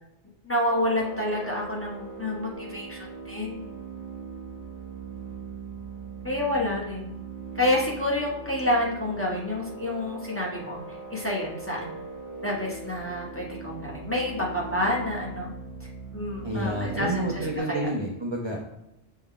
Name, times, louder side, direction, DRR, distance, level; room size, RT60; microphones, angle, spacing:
voice 1, 0.4-3.0 3.3-3.6 6.2-7.1 7.5-10.8 11.1-11.9 12.4-15.5 16.1-17.9, left 1 dB, 15° left, -4 dB, 0.8 m, -28 dB
sound 1, 0.7-17.6, right 3 dB, 65° left, 2.1 m, -40 dB
voice 2, 16.4-18.6, right 1 dB, 35° right, -1 dB, 0.4 m, -29 dB
6.4 x 2.3 x 3.7 m, 0.89 s
omnidirectional pair, 1.2 m